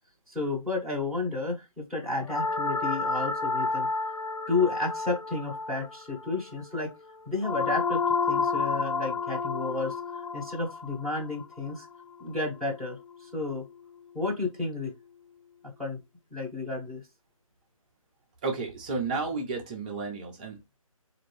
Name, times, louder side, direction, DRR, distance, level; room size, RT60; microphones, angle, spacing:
voice 1, 0.3-3.9 4.5-6.9 7.3-8.0 8.3-11.9 12.2-13.6 14.1-14.9 15.8-16.0 16.3-17.0, left 3 dB, ahead, -7 dB, 1.0 m, -31 dB
sound 1, 2.3-12.5, left 4 dB, 75° left, 0.5 m, -31 dB
voice 2, 18.4-20.8, right 4 dB, 15° right, 1 dB, 0.6 m, -32 dB
4.4 x 2.6 x 3.1 m, 0.22 s
figure-of-eight pair, 150°, 18 cm